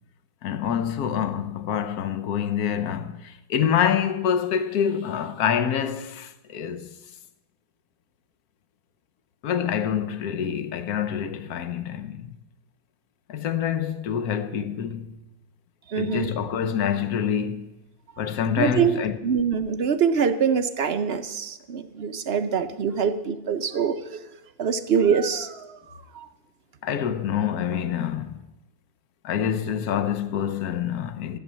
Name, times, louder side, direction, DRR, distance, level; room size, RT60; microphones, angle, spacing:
voice 1, 0.4-7.0 9.4-12.4 13.3-15.2 15.9-17.7 18.2-19.2 26.8-28.4 29.2-31.4, left 8 dB, 80° left, 1.3 m, -26 dB
voice 2, 15.9-16.3 18.6-19.0 19.2-24.2 24.6-25.8 26.1-26.2, right 7 dB, 55° right, 0.8 m, -24 dB
14.0 x 7.8 x 7.4 m
omnidirectional pair, 1.6 m